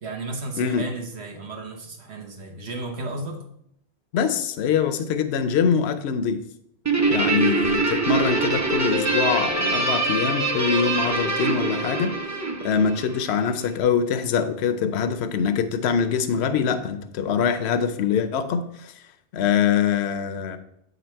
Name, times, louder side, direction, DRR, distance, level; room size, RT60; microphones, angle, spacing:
voice 1, 0.0-3.4 7.2-7.5, right 2 dB, 75° right, 2 dB, 1.4 m, -34 dB
voice 2, 4.1-6.4 7.1-12.1 12.6-18.9 19.3-20.6, left 7 dB, 75° left, 8 dB, 0.9 m, -23 dB
Guitar, 6.9-13.5, right 3 dB, 20° right, 0.6 m, -24 dB
8.0 x 4.0 x 4.4 m, 0.74 s
omnidirectional pair, 1.1 m